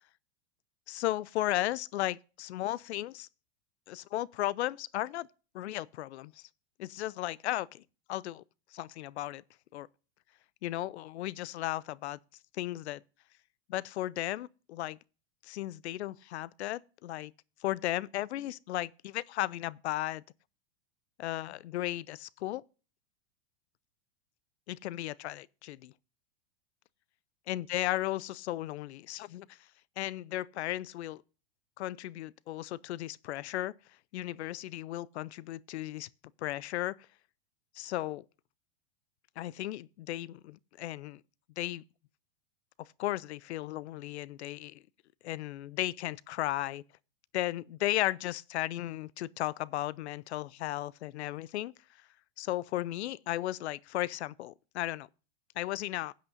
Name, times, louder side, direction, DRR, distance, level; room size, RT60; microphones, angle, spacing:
voice 1, 0.9-3.3 3.9-5.3 5.5-6.4 6.8-7.8 8.1-8.4 8.7-9.4 9.7-9.9 10.6-12.2 12.5-13.0 13.7-15.0 15.4-17.3 17.6-20.2 21.2-22.6 24.7-25.9 27.5-29.6 30.0-31.2 31.8-33.7 34.1-36.1 36.4-37.1 37.7-38.2 39.4-41.2 41.6-41.8 42.8-44.8 45.2-46.8 47.3-51.7 52.4-55.1 55.6-56.1, left 15 dB, 90° left, 0.5 m, -35 dB
16.0 x 8.5 x 2.6 m
supercardioid pair, 125°, 32 cm